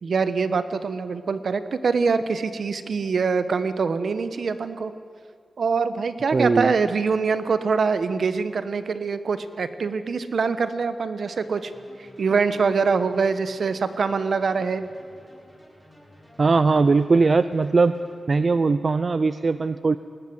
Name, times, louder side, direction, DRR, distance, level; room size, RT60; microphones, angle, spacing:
voice 1, 0.0-4.9 5.6-11.7 12.0-14.8, right 5 dB, 70° right, 12 dB, 1.2 m, -24 dB
voice 2, 6.3-6.7 16.4-18.0 18.3-20.0, right 4 dB, 50° right, 13 dB, 0.5 m, -20 dB
sound 1, 11.3-18.2, equal, 10° right, 7.8 m, -52 dB
20.5 x 19.0 x 8.0 m, 2.4 s
cardioid pair, 65°, 0 cm